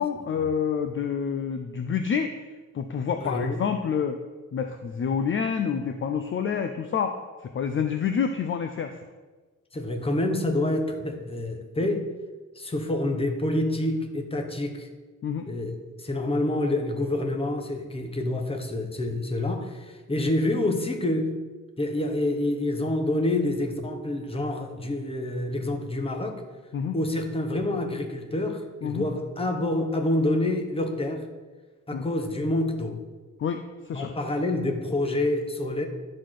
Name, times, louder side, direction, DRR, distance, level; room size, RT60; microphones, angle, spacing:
voice 1, 0.0-2.4 2.7-4.2 4.5-9.0 15.2-15.4 26.7-26.9 28.8-29.0 31.9-32.0 33.4-34.2, left 7 dB, 40° left, 7 dB, 0.5 m, -28 dB
voice 2, 3.2-3.6 9.7-12.1 12.5-14.9 15.5-21.3 21.8-26.4 26.9-31.3 31.9-33.0 33.9-35.9, left 1 dB, 20° left, 4 dB, 1.1 m, -27 dB
11.0 x 4.3 x 6.4 m, 1.3 s
wide cardioid pair, 170°, 30 cm